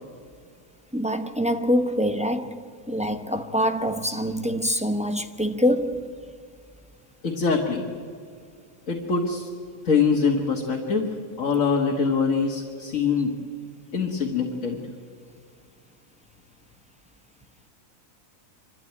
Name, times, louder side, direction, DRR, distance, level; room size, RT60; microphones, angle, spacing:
voice 1, 0.9-6.1, equal, 5° right, 0.6 m, -25 dB
voice 2, 7.2-7.8 8.9-9.5 9.8-11.1 11.4-13.3 13.9-14.8, left 5 dB, 70° left, 2.0 m, -23 dB
26.5 x 13.0 x 9.6 m
omnidirectional pair, 1.4 m